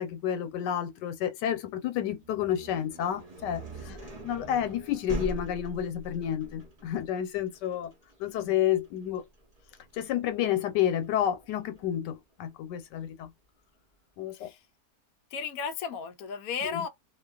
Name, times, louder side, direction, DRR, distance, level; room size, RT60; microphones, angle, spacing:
voice 1, 0.0-4.0 4.2-7.9 8.2-9.2 9.9-13.3 14.2-14.5 16.6-16.8, left 10 dB, 90° left, 1.3 m, -30 dB
sound 1, 2.2-12.0, right 1 dB, 35° right, 0.7 m, -43 dB
voice 2, 15.3-16.9, left 6 dB, 70° left, 0.9 m, -34 dB
2.8 x 2.2 x 2.3 m
omnidirectional pair, 1.8 m